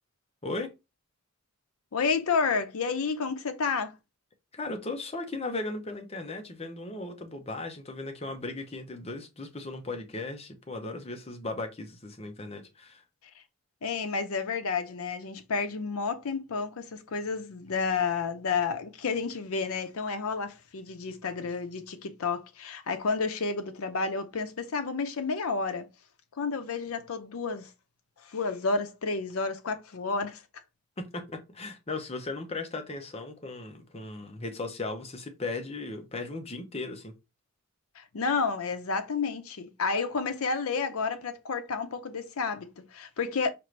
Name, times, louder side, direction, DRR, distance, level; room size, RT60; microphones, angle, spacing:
voice 1, 1.9-3.9 13.8-25.9 26.4-27.7 28.2-30.4 38.0-43.5, left 4 dB, 70° left, 0.6 m, -30 dB
voice 2, 4.5-13.0 31.0-37.1, left 2 dB, 25° left, 0.6 m, -37 dB
4.5 x 2.5 x 3.1 m
head